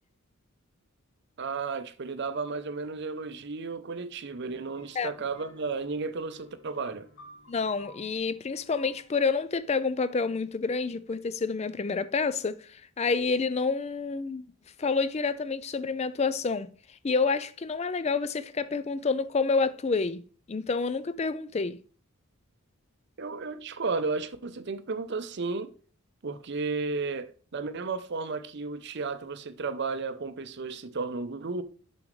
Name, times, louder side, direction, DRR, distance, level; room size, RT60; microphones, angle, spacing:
voice 1, 1.4-7.1 23.2-25.7 26.2-31.6, right 4 dB, 50° right, 0.6 m, -33 dB
sound 1, 4.3-9.3, equal, 60° left, 1.9 m, -55 dB
voice 2, 7.5-14.5 14.8-16.7 17.0-20.2 20.5-21.8, left 4 dB, 30° left, 0.4 m, -28 dB
7.2 x 6.1 x 3.2 m
head